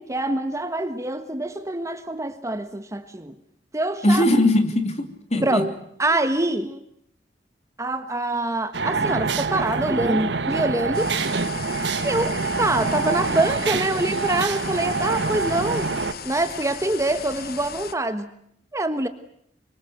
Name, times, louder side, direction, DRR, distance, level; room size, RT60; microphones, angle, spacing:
voice 1, 0.0-3.3 3.7-4.3 5.4-5.7 6.0-6.8 7.8-11.1 12.0-15.9 16.2-18.3 18.7-19.1, right 2 dB, 20° right, 10 dB, 1.4 m, -25 dB
voice 2, 4.0-5.6, left 1 dB, 40° left, 7 dB, 2.9 m, -20 dB
sound 1, 8.7-16.1, right 4 dB, 85° right, 1.4 m, -25 dB
sound 2, 10.9-17.9, left 6 dB, 60° left, 1.2 m, -37 dB
26.0 x 23.5 x 8.0 m, 0.70 s
head